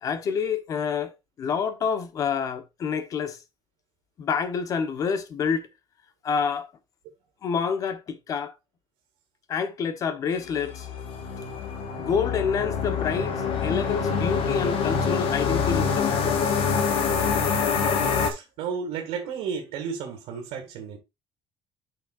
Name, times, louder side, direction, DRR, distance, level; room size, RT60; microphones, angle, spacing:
voice 1, 0.0-1.1 1.4-3.4 4.2-5.7 6.2-6.7 7.4-8.5 9.5-10.9 12.0-16.6, left 6 dB, 35° left, 1.0 m, -28 dB
sound 1, 10.4-18.3, left 6 dB, 65° left, 1.6 m, -25 dB
voice 2, 18.2-21.0, right 6 dB, 85° right, 2.2 m, -33 dB
9.6 x 5.9 x 2.5 m
cardioid pair, 175°, 10 cm